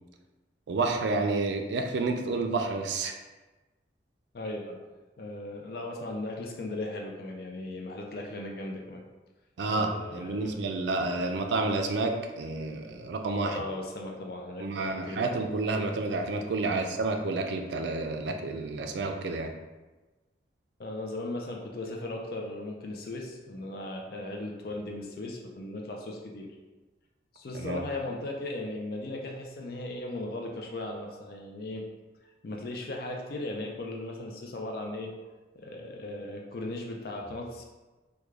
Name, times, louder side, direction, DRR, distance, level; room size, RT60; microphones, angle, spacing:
voice 1, 0.7-3.2 9.6-13.6 14.6-19.5 27.5-27.8, right 3 dB, 75° right, 5 dB, 0.4 m, -30 dB
voice 2, 4.3-4.8 5.2-9.0 9.7-10.6 13.5-15.4 16.6-16.8 19.0-19.1 20.8-26.5 27.3-31.8 32.4-35.1 35.6-37.6, left 2 dB, 55° left, 1 dB, 0.4 m, -37 dB
3.2 x 2.2 x 3.5 m, 1.2 s
head